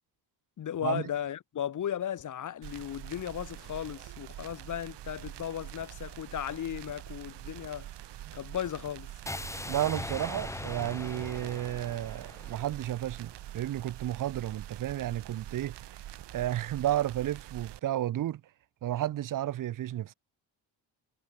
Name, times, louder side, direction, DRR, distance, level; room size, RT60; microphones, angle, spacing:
voice 1, 0.6-7.9 8.3-9.1, left 10 dB, 50° left, 1.7 m, -36 dB
sound 1, 2.6-17.8, right 14 dB, 85° right, 2.3 m, -45 dB
sound 2, 9.3-13.3, left 2 dB, 5° left, 1.3 m, -40 dB
voice 2, 9.7-15.8 16.3-18.4 18.8-20.1, right 12 dB, 50° right, 0.8 m, -32 dB
cardioid pair, 170°, 40 cm